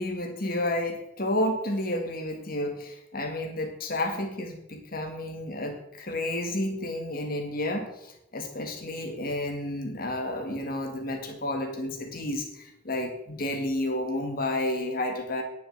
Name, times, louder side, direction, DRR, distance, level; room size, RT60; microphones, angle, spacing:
voice 1, 0.0-15.4, left 1 dB, 50° left, 4 dB, 1.9 m, -31 dB
10.0 x 6.7 x 7.8 m, 0.80 s
head